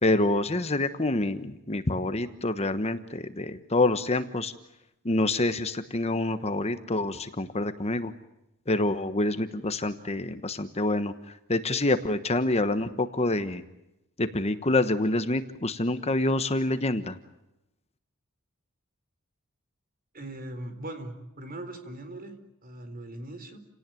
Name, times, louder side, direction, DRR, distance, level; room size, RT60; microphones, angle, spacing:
voice 1, 0.0-4.5 5.0-8.1 8.7-13.6 14.2-17.2, left 2 dB, 30° left, 10 dB, 1.2 m, -27 dB
voice 2, 20.1-23.6, right 1 dB, 45° right, 8 dB, 4.1 m, -40 dB
30.0 x 18.0 x 9.2 m, 0.88 s
head